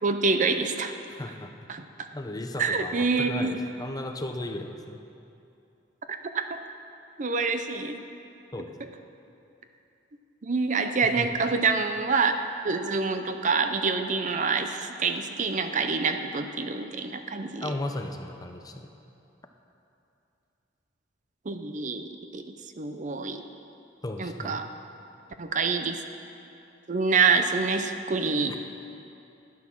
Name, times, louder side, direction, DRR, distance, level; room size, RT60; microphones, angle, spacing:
voice 1, 0.0-0.9 1.7-2.1 2.6-3.6 6.1-6.6 7.2-8.0 10.4-12.4 12.6-17.7 21.5-23.4 24.2-24.7 25.4-26.0 26.9-28.5, right 4 dB, 40° right, 8 dB, 0.5 m, -26 dB
voice 2, 1.1-1.5 2.1-5.0 8.5-8.8 11.0-11.3 17.6-18.9 24.0-24.6 28.5-28.6, left 1 dB, 20° left, 5 dB, 0.7 m, -35 dB
12.5 x 9.5 x 6.2 m, 2.7 s
head